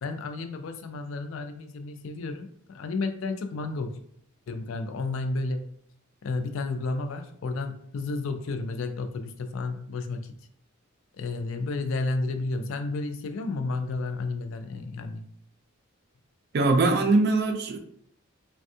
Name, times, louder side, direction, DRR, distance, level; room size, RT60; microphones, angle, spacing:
voice 1, 0.0-4.0 4.5-5.7 6.2-10.4 11.2-15.2, left 3 dB, 70° left, 7 dB, 0.4 m, -32 dB
voice 2, 16.5-17.8, right 3 dB, 50° right, 5 dB, 0.4 m, -22 dB
3.3 x 2.2 x 2.6 m, 0.65 s
head